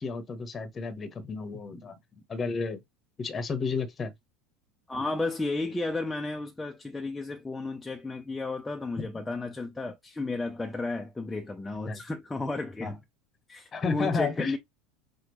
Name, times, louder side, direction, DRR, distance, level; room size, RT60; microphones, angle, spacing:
voice 1, 0.0-1.9 2.3-2.8 3.2-4.1 9.0-9.1 11.9-12.0 12.8-12.9 13.7-14.6, left 4 dB, 25° left, 1.1 m, -31 dB
voice 2, 4.9-13.0 13.5-14.6, left 2 dB, 10° left, 0.7 m, -33 dB
5.9 x 2.4 x 3.2 m
figure-of-eight pair, 70°, 0 cm